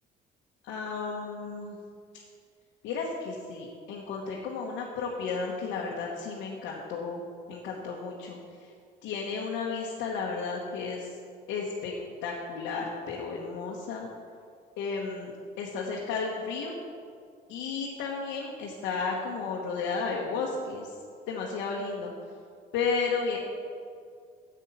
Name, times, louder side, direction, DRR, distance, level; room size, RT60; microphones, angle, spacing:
voice 1, 0.6-1.8 2.8-7.2 7.5-8.7 9.0-11.2 11.5-11.9 12.2-14.1 14.8-16.7 17.5-20.9 21.3-22.1 22.7-23.4, left 4 dB, 90° left, -3 dB, 1.4 m, -33 dB
10.0 x 8.2 x 5.7 m, 2.2 s
cardioid pair, 110°, 18 cm